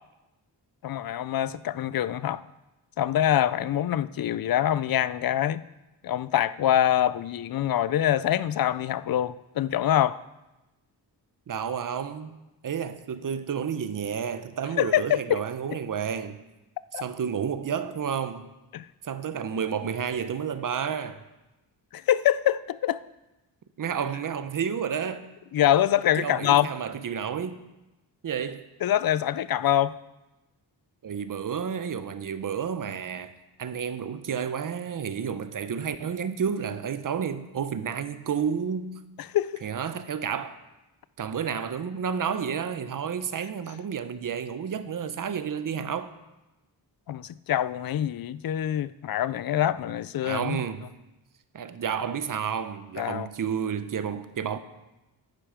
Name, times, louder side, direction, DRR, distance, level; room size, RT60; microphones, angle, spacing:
voice 1, 0.8-2.4 3.0-5.6 6.0-10.2 14.8-15.4 16.9-17.0 18.7-18.9 21.9-23.0 25.5-26.7 28.8-30.0 39.3-39.6 47.1-50.6 53.0-53.3, left 11 dB, 60° left, 0.5 m, -25 dB
voice 2, 11.5-12.4 12.6-16.4 16.9-18.5 19.0-21.2 23.8-25.3 26.2-27.6 28.2-28.7 31.0-33.3 33.6-39.0 39.6-40.6 41.2-46.1 50.2-50.9 51.5-54.6, right 7 dB, 50° right, 0.8 m, -31 dB
11.5 x 8.9 x 5.1 m
wide cardioid pair, 135°, 42 cm